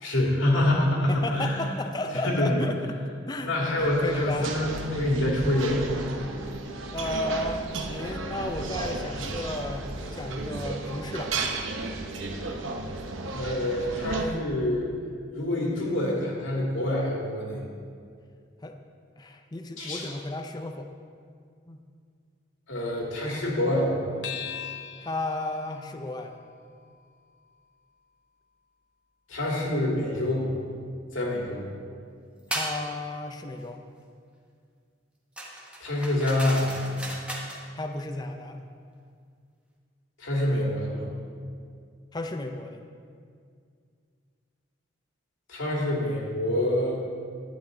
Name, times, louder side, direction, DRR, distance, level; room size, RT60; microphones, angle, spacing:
voice 1, 0.0-1.7 2.2-2.6 3.4-5.8 13.3-14.9 15.3-17.6 19.8-20.1 22.7-24.1 29.3-30.5 31.1-31.6 35.8-36.8 40.2-41.1 45.5-47.0, left 1 dB, 85° left, -3 dB, 2.4 m, -26 dB
voice 2, 1.1-3.0 3.3-4.5 6.9-11.4 12.8-12.9 18.6-18.8 19.2-20.9 21.7-21.8 25.0-26.4 32.5-33.9 37.7-38.7 42.1-42.8, left 1 dB, 20° left, 5 dB, 0.4 m, -33 dB
sound 1, 3.8-14.2, right 3 dB, 80° right, 0.8 m, -34 dB
sound 2, 24.2-29.0, left 10 dB, 65° left, 0.7 m, -43 dB
sound 3, 32.5-32.8 35.4-37.6, right 1 dB, 5° right, 1.0 m, -35 dB
11.0 x 9.4 x 3.9 m, 2.2 s
head